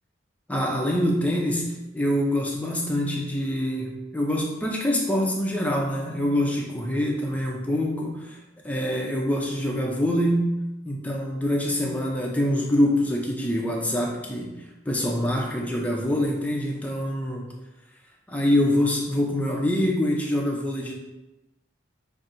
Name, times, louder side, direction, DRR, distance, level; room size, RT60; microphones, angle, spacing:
voice 1, 0.5-8.4 8.6-10.5 10.8-14.5 14.9-17.5 18.3-20.9, left 1 dB, 5° left, -1 dB, 0.4 m, -25 dB
5.6 x 2.6 x 2.5 m, 1.0 s
head